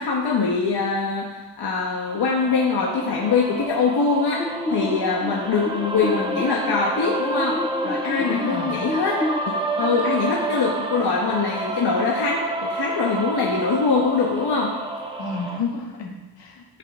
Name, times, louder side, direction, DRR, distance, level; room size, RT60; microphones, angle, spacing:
voice 1, 0.0-14.7, left 4 dB, 65° left, -1 dB, 1.2 m, -23 dB
sound 1, 2.0-15.6, right 2 dB, 10° right, 1.0 m, -29 dB
sound 2, 4.4-9.4, left 1 dB, 10° left, 0.3 m, -30 dB
voice 2, 8.2-8.9 15.2-16.6, left 4 dB, 80° left, 0 dB, 1.8 m, -30 dB
15.0 x 5.6 x 3.6 m, 1.2 s
wide cardioid pair, 110°, 42 cm